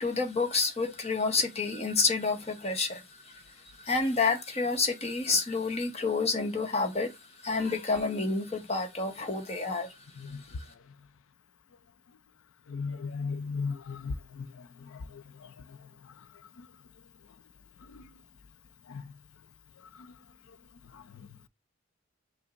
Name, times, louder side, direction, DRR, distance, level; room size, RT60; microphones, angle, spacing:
voice 1, 0.0-3.0 3.3-3.4 3.8-7.1 7.4-9.9, left 4 dB, 30° left, 0.9 m, -29 dB
voice 2, 12.7-14.1, left 5 dB, 75° left, 0.4 m, -33 dB
5.7 x 2.0 x 3.8 m
head